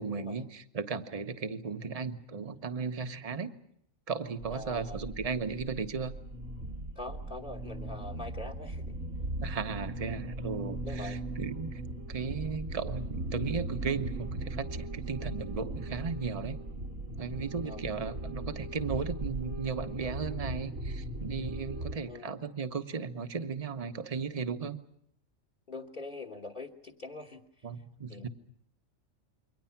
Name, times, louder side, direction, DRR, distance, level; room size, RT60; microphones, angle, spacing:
voice 1, 0.0-3.5 4.1-6.1 9.4-11.8 12.1-16.6 17.2-24.8 27.6-28.3, right 5 dB, 30° right, 9 dB, 1.1 m, -36 dB
sound 1, 4.4-22.0, right 1 dB, 75° right, 2.2 m, -38 dB
voice 2, 4.5-5.1 6.9-9.0 10.8-11.2 17.6-17.8 22.1-22.3 25.7-27.4 28.1-28.3, left 2 dB, 40° left, 4 dB, 1.6 m, -43 dB
28.5 x 23.0 x 5.9 m, 0.70 s
omnidirectional pair, 1.3 m